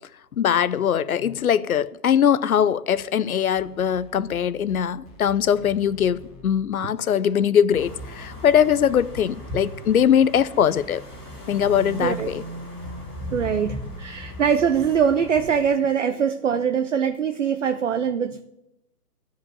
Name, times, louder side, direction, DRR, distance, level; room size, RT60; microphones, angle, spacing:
voice 1, 0.4-11.0 11.5-12.4, left 8 dB, 65° left, 0.6 m, -21 dB
sound 1, 3.5-6.8 7.7-12.8 13.4-15.6, left 4 dB, 20° left, 1.6 m, -48 dB
sound 2, 7.7-15.7, right 1 dB, 5° left, 1.1 m, -37 dB
voice 2, 13.3-18.4, right 7 dB, 50° right, 0.6 m, -22 dB
12.5 x 5.1 x 8.7 m
hypercardioid pair, 170°, 47 cm